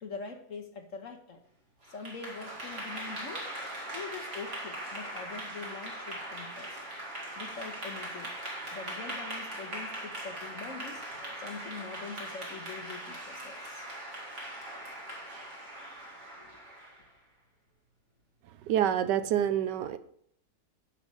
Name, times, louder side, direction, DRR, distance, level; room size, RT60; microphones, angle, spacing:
voice 1, 0.0-1.4 1.9-3.5 3.9-6.8 7.4-8.3 8.7-11.1 11.4-13.9 16.4-16.6, left 4 dB, 50° left, 5 dB, 1.3 m, -43 dB
Clapping / Applause, 1.8-17.1, right 1 dB, 40° right, 2.6 m, -40 dB
voice 2, 18.7-20.0, right 10 dB, 75° right, 13 dB, 1.2 m, -27 dB
10.0 x 5.8 x 5.3 m, 0.69 s
omnidirectional pair, 1.9 m